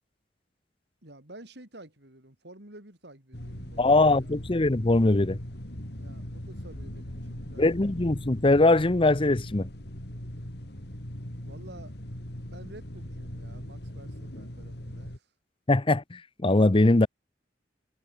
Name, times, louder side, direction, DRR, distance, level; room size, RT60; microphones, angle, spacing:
voice 1, 1.0-4.3 6.0-7.6 11.4-12.0 12.5-15.3, right 1 dB, 65° right, 6.0 m, -50 dB
sound 1, 3.3-15.2, equal, 65° left, 4.2 m, -40 dB
voice 2, 3.8-5.4 7.6-9.7 15.7-17.1, left 2 dB, 30° left, 0.8 m, -21 dB
head